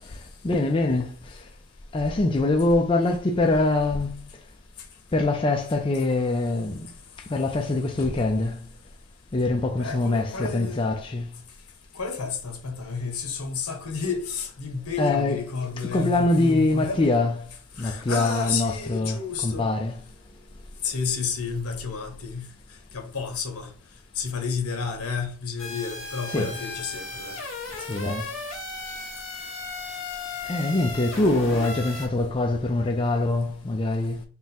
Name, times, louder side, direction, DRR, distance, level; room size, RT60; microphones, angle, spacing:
voice 1, 0.4-1.4 1.9-4.2 5.1-6.9 7.3-8.6 9.3-11.3 15.0-15.4 15.9-17.3 17.8-20.0 26.3-26.6 27.8-28.3 30.4-34.2, left 2 dB, 25° left, 0.3 m, -24 dB
voice 2, 9.8-10.8 11.9-17.0 17.8-19.7 20.8-22.5 22.9-23.7 24.1-27.4, left 5 dB, 85° left, 0.9 m, -31 dB
sound 1, 25.6-32.1, left 3 dB, 60° left, 1.7 m, -35 dB
3.6 x 2.1 x 4.2 m
head